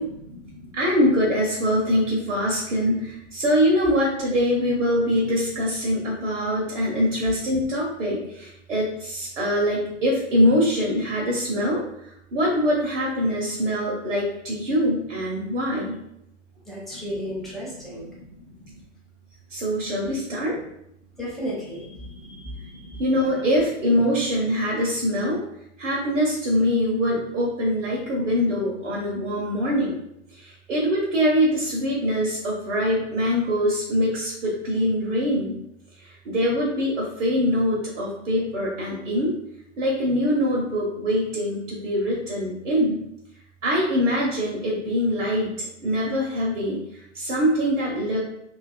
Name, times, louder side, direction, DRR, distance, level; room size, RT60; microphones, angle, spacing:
voice 1, 0.3-16.0 16.9-17.1 17.9-18.3 18.7-18.8 19.5-20.6 22.2-22.3 22.6-25.4 25.8-30.0 30.3-35.6 36.0-39.3 39.8-43.0 43.6-48.2, equal, 75° right, -4 dB, 0.7 m, -24 dB
voice 2, 16.7-18.1 21.2-23.0, equal, ahead, -6 dB, 0.6 m, -34 dB
2.4 x 2.3 x 2.4 m, 0.78 s
figure-of-eight pair, 100°, 37 cm